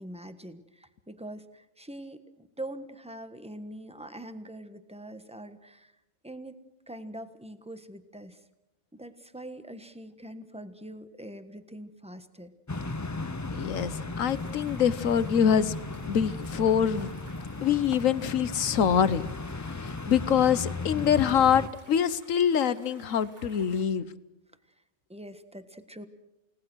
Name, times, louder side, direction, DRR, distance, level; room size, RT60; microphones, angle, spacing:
voice 1, 0.0-5.9 6.2-6.5 6.9-8.4 8.9-12.5 19.8-20.0 25.1-26.1, right 1 dB, 5° right, 10 dB, 1.3 m, -43 dB
sound 1, 12.7-21.7, left 3 dB, 20° left, 0.5 m, -36 dB
voice 2, 13.5-15.7 16.1-17.1 17.6-19.2 19.8-24.0, left 8 dB, 70° left, 15 dB, 1.3 m, -25 dB
sound 2, 14.3-23.8, right 1 dB, 30° right, 4.8 m, -54 dB
29.5 x 18.5 x 6.3 m, 0.92 s
omnidirectional pair, 1.4 m